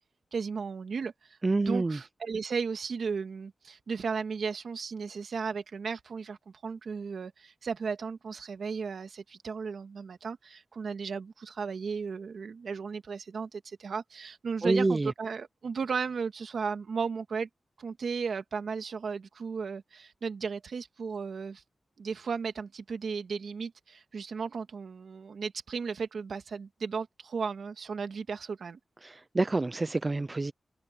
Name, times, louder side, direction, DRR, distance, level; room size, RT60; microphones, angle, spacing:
voice 1, 0.3-17.5 17.8-21.6 22.0-28.8, right 5 dB, 70° right, 1.9 m, -35 dB
voice 2, 1.4-2.0 14.6-15.1 29.0-30.5, right 3 dB, 25° right, 0.6 m, -27 dB
wide cardioid pair, 175°, 0 cm